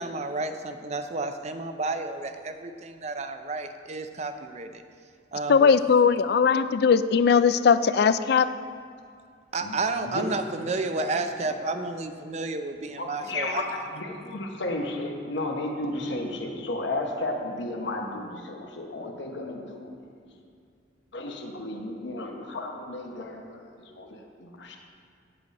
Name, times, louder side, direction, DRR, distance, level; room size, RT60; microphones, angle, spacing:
voice 1, 0.0-4.8 5.3-5.7 9.5-13.6, right 3 dB, 35° right, 8 dB, 0.5 m, -31 dB
voice 2, 5.5-8.5, left 6 dB, 60° left, 13 dB, 0.3 m, -19 dB
voice 3, 9.6-10.4 10.7-11.1 11.5-11.8 12.9-19.9 21.1-24.8, left 2 dB, 80° left, 2 dB, 1.0 m, -33 dB
9.0 x 7.8 x 4.1 m, 2.3 s
head